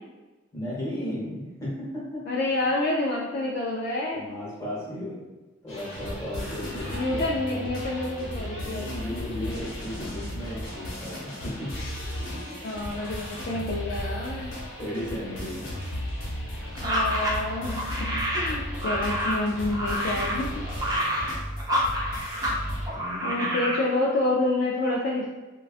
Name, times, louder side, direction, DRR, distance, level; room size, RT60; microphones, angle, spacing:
voice 1, 0.5-2.2 4.1-5.2 5.6-7.3 7.6-7.7 8.5-11.7 12.3-12.5 14.8-15.7 22.9-23.6, equal, 15° left, -8 dB, 1.0 m, -35 dB
voice 2, 2.3-4.3 6.9-9.1 12.6-14.5 16.8-20.6 23.2-25.3, left 2 dB, 50° left, -3 dB, 0.3 m, -28 dB
Metal Hop Loop, 5.7-22.9, left 1 dB, 75° left, 0.9 m, -35 dB
sound 1, 16.8-22.6 22.9-23.8, equal, 20° right, 0.4 m, -28 dB
3.4 x 2.2 x 2.4 m, 1.2 s
head